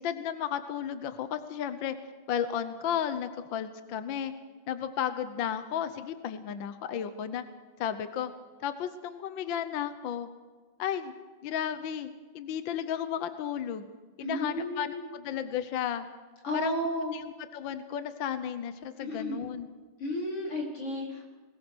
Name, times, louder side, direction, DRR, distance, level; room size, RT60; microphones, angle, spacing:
voice 1, 0.0-2.0 2.3-4.3 4.7-7.4 7.8-8.3 8.6-10.3 10.8-11.1 11.4-12.1 12.3-13.9 14.2-16.1 16.5-16.9 17.1-19.7, left 9 dB, 65° left, 11 dB, 1.6 m, -33 dB
voice 2, 14.2-15.1 16.4-17.1 19.0-19.4 20.0-21.2, left 1 dB, 90° left, -1 dB, 5.1 m, -33 dB
21.5 x 20.0 x 6.2 m, 1.4 s
omnidirectional pair, 2.4 m